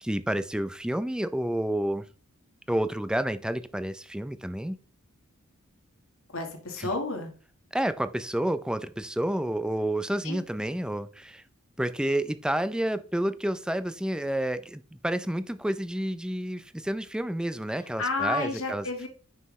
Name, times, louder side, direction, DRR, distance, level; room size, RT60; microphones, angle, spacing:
voice 1, 0.0-2.0 2.7-4.8 6.8-6.9 7.7-11.4 11.8-18.8, right 1 dB, 5° right, 0.4 m, -29 dB
voice 2, 6.3-7.3 10.2-10.4 18.0-19.1, left 3 dB, 65° left, 1.5 m, -31 dB
9.6 x 5.7 x 3.1 m
head